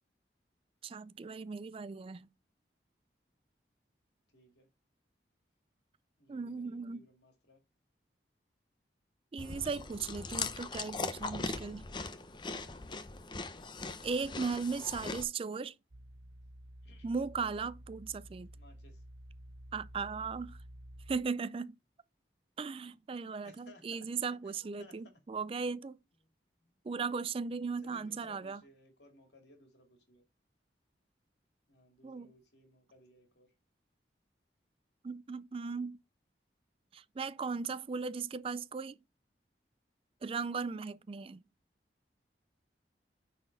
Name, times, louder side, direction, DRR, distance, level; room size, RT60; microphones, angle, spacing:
voice 1, 0.8-2.3 6.3-7.0 9.3-11.8 14.0-15.7 17.0-18.5 19.7-20.6 21.1-21.8 22.6-26.0 26.8-28.6 32.0-32.3 35.0-36.0 36.9-39.0 40.2-41.4, right 5 dB, 30° right, 0.3 m, -37 dB
voice 2, 4.3-4.7 6.2-7.6 16.8-17.1 18.5-19.0 23.4-25.2 26.2-26.3 26.6-26.8 27.8-30.2 31.7-33.5, left 1 dB, 75° left, 2.3 m, -61 dB
Chewing mastication, 9.4-15.2, left 4 dB, 25° left, 0.6 m, -40 dB
sound 1, 15.9-21.2, right 1 dB, 70° right, 1.0 m, -52 dB
9.6 x 4.2 x 4.0 m
head